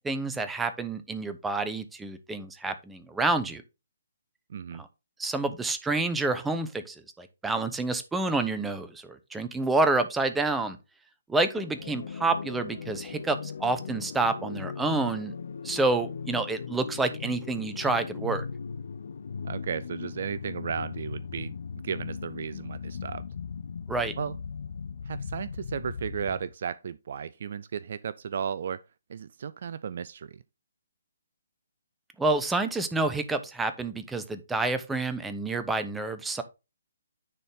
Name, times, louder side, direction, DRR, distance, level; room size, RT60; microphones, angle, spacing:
voice 1, 0.0-3.6 4.7-4.9 5.2-10.8 11.3-15.3 15.6-18.4 23.9-24.1 32.2-36.4, right 3 dB, 5° right, 0.8 m, -28 dB
voice 2, 4.5-4.8 19.4-21.5 21.8-23.3 24.2-24.4 25.1-28.8 29.1-30.4, right 7 dB, 50° right, 0.4 m, -34 dB
sound 1, 11.6-26.5, left 6 dB, 55° left, 0.6 m, -38 dB
9.9 x 4.2 x 3.6 m
figure-of-eight pair, 135°, 0 cm